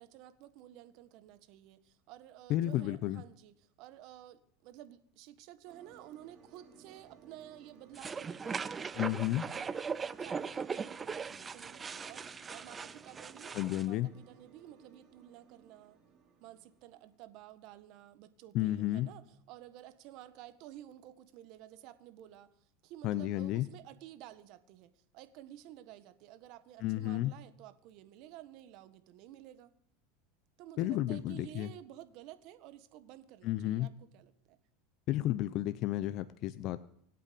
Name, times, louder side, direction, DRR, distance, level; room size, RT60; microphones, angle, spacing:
voice 1, 0.0-9.1 9.5-9.7 10.2-16.0 16.4-29.7 30.6-34.6, right 13 dB, 60° right, 12 dB, 1.5 m, -52 dB
voice 2, 2.5-3.2 9.0-9.4 13.5-14.1 18.5-19.1 23.0-23.7 26.8-27.3 30.8-31.7 33.4-33.9 35.1-36.8, left 14 dB, 50° left, 13 dB, 0.7 m, -32 dB
sound 1, 5.7-17.2, right 6 dB, 35° right, 4.6 m, -60 dB
sound 2, 7.9-13.9, right 5 dB, 20° right, 0.6 m, -39 dB
26.0 x 8.6 x 5.3 m, 0.70 s
supercardioid pair, 110°, 0 cm